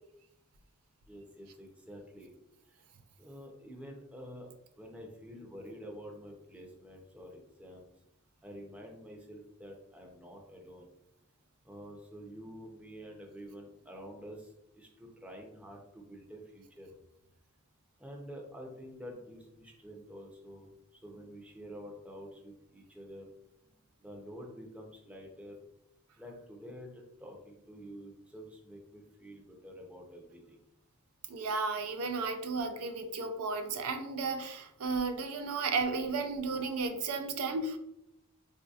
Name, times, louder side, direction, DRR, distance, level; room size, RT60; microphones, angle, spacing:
voice 1, 1.1-2.3 2.7-2.8 3.2-4.5 4.8-7.9 8.4-10.9 11.6-16.9 18.0-23.3 24.0-25.6 26.2-30.6, equal, 5° right, 0 dB, 0.5 m, -48 dB
voice 2, 31.3-37.8, right 4 dB, 90° right, 7 dB, 0.4 m, -33 dB
4.0 x 2.7 x 2.3 m, 0.82 s
head